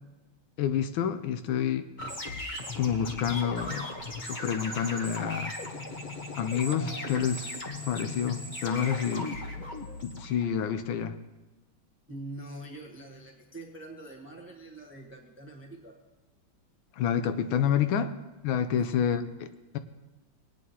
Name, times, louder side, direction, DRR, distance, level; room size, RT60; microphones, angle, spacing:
voice 1, 0.6-1.9 2.8-3.9 4.3-5.5 6.4-7.5 7.9-9.3 10.0-11.2 17.0-18.1 18.4-19.8, left 8 dB, 75° left, 10 dB, 1.3 m, -28 dB
sound 1, 2.0-10.7, left 2 dB, 35° left, 0.8 m, -37 dB
voice 2, 12.1-16.0 18.8-19.0, right 2 dB, 10° right, 0 dB, 0.8 m, -44 dB
20.0 x 9.3 x 2.8 m, 1.2 s
omnidirectional pair, 2.3 m